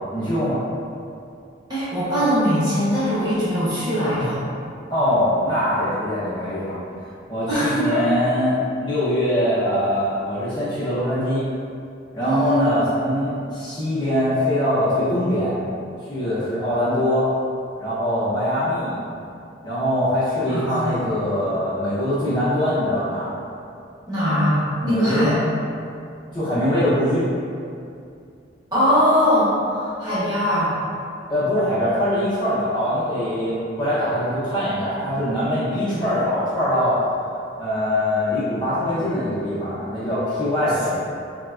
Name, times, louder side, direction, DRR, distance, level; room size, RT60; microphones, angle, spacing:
voice 1, 0.1-0.6 4.9-6.8 7.3-11.5 12.1-15.5 16.1-17.3 17.8-19.0 19.6-23.4 24.8-25.4 26.3-27.2 31.3-37.0 37.6-41.0, left 1 dB, 25° left, -12 dB, 0.7 m, -22 dB
voice 2, 1.7-4.4 7.5-8.1 12.2-12.6 20.5-21.0 24.1-25.3 26.5-26.6 28.7-30.7 35.9-36.0, equal, 20° right, -12 dB, 0.8 m, -21 dB
3.3 x 2.1 x 2.4 m, 2.5 s
head